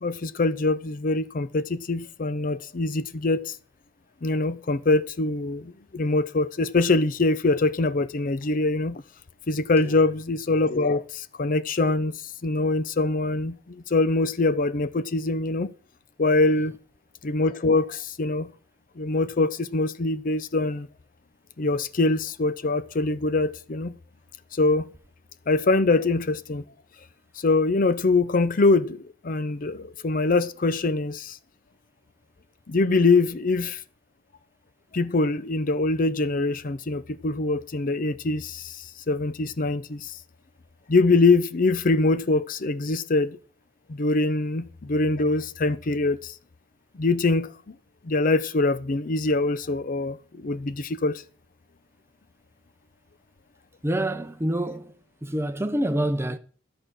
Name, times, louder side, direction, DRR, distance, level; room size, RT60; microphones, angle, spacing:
voice 1, 0.0-3.5 4.2-9.0 9.5-12.1 12.4-15.7 16.2-16.7 17.2-18.5 19.0-20.9 21.6-23.9 24.5-24.9 25.5-26.6 27.4-31.4 32.7-33.8 34.9-40.2 40.9-43.4 43.9-46.3 47.0-47.5 48.0-51.2, left 3 dB, 45° left, 0.6 m, -23 dB
voice 2, 53.8-54.9 55.2-56.4, right 1 dB, 15° right, 0.7 m, -27 dB
13.5 x 6.6 x 6.1 m
head